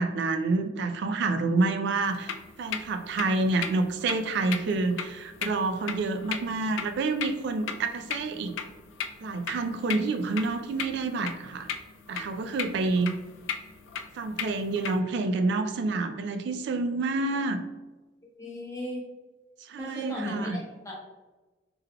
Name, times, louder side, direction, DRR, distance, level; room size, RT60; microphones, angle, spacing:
voice 1, 0.0-2.3 2.6-8.5 9.2-11.7 12.1-13.1 14.1-17.6 19.6-20.6, right 3 dB, 60° right, 7 dB, 0.3 m, -28 dB
sound 1, 2.1-15.0, left 7 dB, 75° left, 0.3 m, -38 dB
voice 2, 18.4-19.0 19.8-20.9, left 1 dB, 15° left, -3 dB, 0.8 m, -36 dB
3.5 x 3.3 x 2.2 m, 1.2 s
head